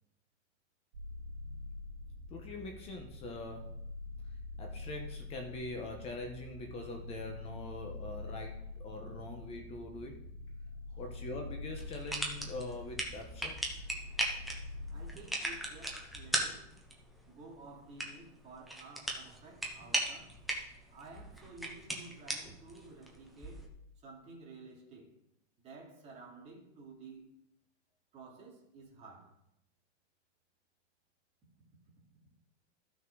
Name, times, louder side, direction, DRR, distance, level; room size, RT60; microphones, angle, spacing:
sound 1, 0.9-15.1, left 2 dB, 50° right, 3.2 m, -45 dB
voice 1, 2.3-3.7 4.6-10.2 11.0-13.5, left 2 dB, 15° left, 1.0 m, -43 dB
sound 2, 11.8-23.7, right 1 dB, ahead, 0.4 m, -39 dB
voice 2, 14.9-16.7 17.3-20.4 20.9-23.7 24.0-25.1 25.6-27.2 28.1-29.4, right 3 dB, 20° right, 2.3 m, -53 dB
13.5 x 6.1 x 4.7 m
supercardioid pair, 170°, 35 cm